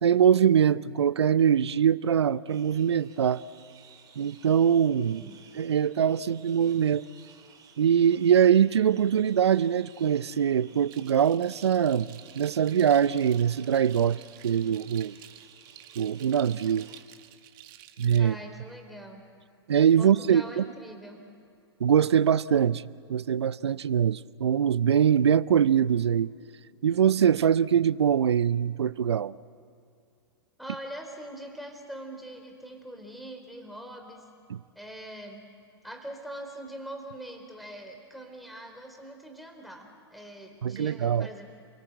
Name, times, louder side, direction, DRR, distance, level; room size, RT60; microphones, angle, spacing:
voice 1, 0.0-3.4 4.2-5.2 5.5-7.0 7.8-15.2 16.0-16.9 18.0-18.4 19.7-20.7 21.8-22.8 23.1-26.3 26.8-29.3 34.5-34.6 40.6-41.3, right 8 dB, 75° right, 0.7 m, -23 dB
sound 1, 2.5-17.0, right 7 dB, 25° right, 3.4 m, -56 dB
voice 2, 5.0-5.4 18.2-19.2 20.0-21.2 30.6-34.2 34.7-35.5 35.8-41.5, right 1 dB, ahead, 4.2 m, -43 dB
sound 2, 10.9-18.2, right 13 dB, 50° right, 1.7 m, -51 dB
29.5 x 23.0 x 8.0 m
hypercardioid pair, 105°, 14 cm